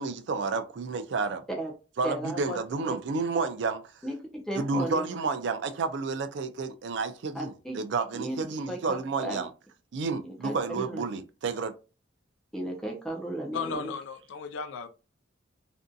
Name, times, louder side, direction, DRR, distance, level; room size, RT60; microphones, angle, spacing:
voice 1, 0.0-1.4 2.0-3.8 4.6-9.5 9.9-11.7, right 4 dB, 65° right, 0.4 m, -30 dB
voice 2, 2.0-2.6 4.0-5.1 7.3-7.8 8.1-8.4 8.7-9.4 10.2-11.0 12.5-13.9, right 1 dB, 5° left, 0.4 m, -35 dB
voice 3, 13.5-14.9, left 5 dB, 90° left, 0.4 m, -35 dB
2.5 x 2.5 x 2.2 m
head